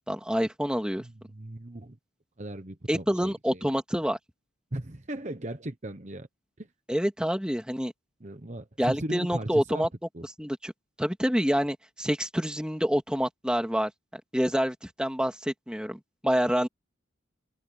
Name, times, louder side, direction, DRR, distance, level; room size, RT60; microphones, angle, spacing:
voice 1, 0.0-1.0 2.9-4.2 6.9-7.9 8.8-9.9 10.4-10.7 11.0-16.7, equal, 5° right, 2.2 m, -27 dB
voice 2, 1.0-2.0 2.4-3.7 4.7-6.3 6.6-6.7 8.2-9.9 10.1-10.2, right 1 dB, 35° right, 1.1 m, -37 dB
head